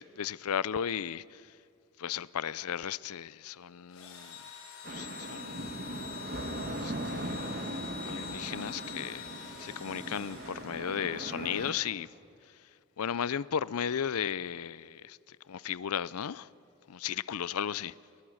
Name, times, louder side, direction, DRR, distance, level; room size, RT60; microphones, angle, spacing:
voice 1, 0.0-1.4 2.0-4.4 4.9-5.8 6.8-7.5 8.0-9.3 9.6-12.1 13.0-15.2 15.5-16.5 16.9-17.9, left 8 dB, 85° left, 0.5 m, -35 dB
Engine / Drill, 3.9-11.2, left 7 dB, 70° left, 5.2 m, -45 dB
sound 1, 4.8-11.7, right 1 dB, 45° right, 1.5 m, -39 dB
28.5 x 22.0 x 6.4 m
head